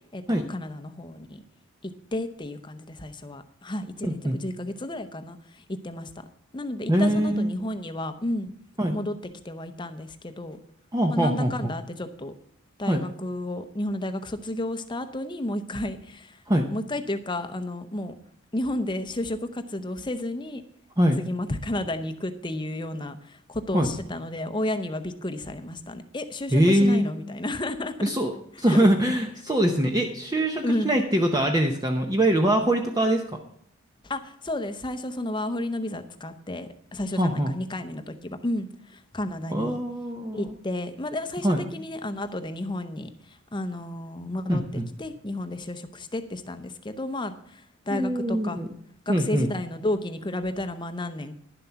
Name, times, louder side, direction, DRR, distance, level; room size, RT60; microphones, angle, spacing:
voice 1, 0.1-1.4 1.8-6.2 6.5-8.5 8.9-9.1 9.4-10.6 11.1-12.3 12.8-16.4 16.7-18.1 18.5-20.6 21.2-27.9 28.7-28.8 30.6-30.9 34.0-39.8 40.3-43.1 43.5-44.6 45.0-48.6 49.1-51.4, left 1 dB, 20° left, 9 dB, 0.7 m, -32 dB
voice 2, 4.0-4.4 6.9-7.5 8.8-9.0 10.9-11.7 12.9-13.0 16.5-16.7 21.0-21.2 23.7-23.9 26.5-27.1 28.0-28.3 28.6-33.4 37.2-37.5 39.5-40.5 41.4-41.6 44.5-44.9 47.9-48.7 49.1-49.5, right 1 dB, 20° right, 3 dB, 0.8 m, -23 dB
11.0 x 7.6 x 5.7 m, 0.67 s
head